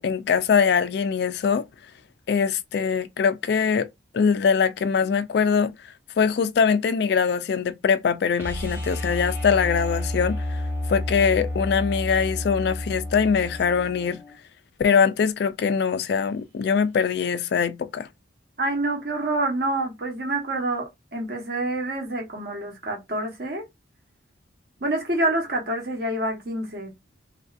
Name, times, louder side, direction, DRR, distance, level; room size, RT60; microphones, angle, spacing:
voice 1, 0.0-1.6 2.3-3.9 4.1-5.7 6.2-10.6 10.9-14.2 14.8-18.1, left 6 dB, 55° left, 0.3 m, -22 dB
sound 1, 8.4-14.3 16.8-16.9, left 1 dB, 10° right, 1.0 m, -30 dB
voice 2, 18.6-23.6 24.8-26.9, right 2 dB, 50° right, 1.0 m, -27 dB
3.1 x 2.5 x 2.4 m
head